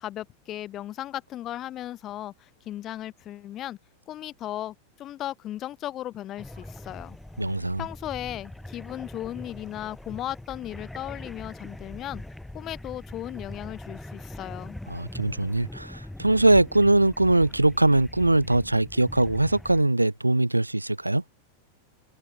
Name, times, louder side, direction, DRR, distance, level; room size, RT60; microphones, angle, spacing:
voice 1, 0.0-3.8 4.1-7.2 7.8-12.2 12.5-14.8, left 13 dB, 30° left, 3.2 m, -36 dB
sound 1, 6.4-19.8, left 1 dB, 5° left, 5.3 m, -42 dB
voice 2, 7.4-7.8 14.9-21.2, right 2 dB, 85° right, 0.8 m, -22 dB
figure-of-eight pair, 90°, 0 cm